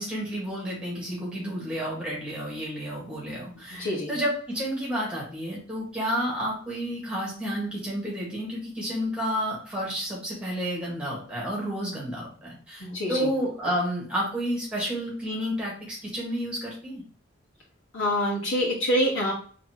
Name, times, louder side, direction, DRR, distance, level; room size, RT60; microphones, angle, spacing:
voice 1, 0.0-17.0, equal, 5° right, -4 dB, 1.7 m, -31 dB
voice 2, 3.8-4.1 12.8-13.3 17.9-19.3, equal, 85° left, -5 dB, 1.5 m, -26 dB
4.1 x 3.2 x 3.1 m, 0.43 s
head